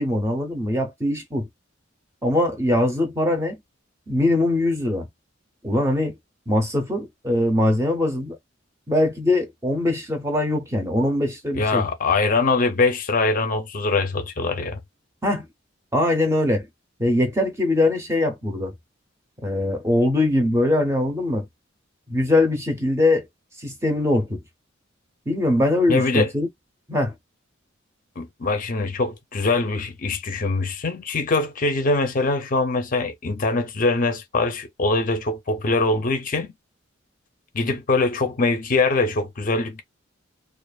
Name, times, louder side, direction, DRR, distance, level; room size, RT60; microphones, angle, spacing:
voice 1, 0.0-1.5 2.2-3.6 4.1-5.1 5.6-6.2 6.5-8.4 8.9-11.9 15.2-15.4 15.9-16.7 17.0-18.7 19.4-21.5 22.1-23.3 23.6-24.4 25.3-26.5 26.9-27.1, left 1 dB, 15° right, 0.7 m, -22 dB
voice 2, 11.5-14.8 25.9-26.3 28.2-36.5 37.5-39.8, left 3 dB, 45° left, 0.5 m, -23 dB
2.4 x 2.4 x 2.2 m
head